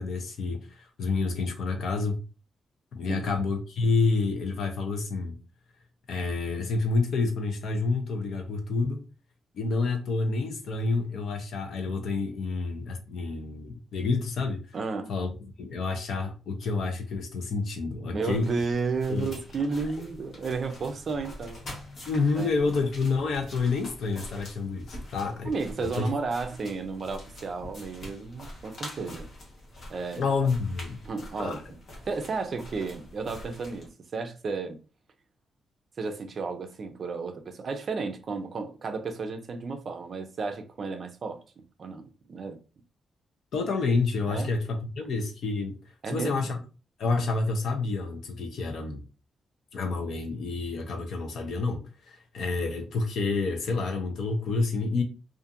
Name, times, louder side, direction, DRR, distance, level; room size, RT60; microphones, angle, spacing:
voice 1, 0.0-2.2 2.9-5.4 6.1-9.0 9.5-14.6 15.1-15.3 15.6-18.5 19.1-19.3 22.1-25.5 25.8-26.1 30.2-31.0 31.4-31.6 43.5-45.8 46.1-46.6 47.0-49.0 49.7-55.0, left 3 dB, 70° left, 0.6 m, -28 dB
voice 2, 14.7-15.1 18.1-21.6 22.4-22.5 25.4-29.3 29.9-30.3 31.0-31.6 32.1-34.8 36.0-41.4 41.8-42.6 44.3-44.5 46.0-46.6, right 4 dB, 45° right, 0.4 m, -33 dB
sound 1, 18.3-33.9, left 1 dB, 55° left, 1.0 m, -45 dB
2.6 x 2.5 x 2.4 m
wide cardioid pair, 145°, 0 cm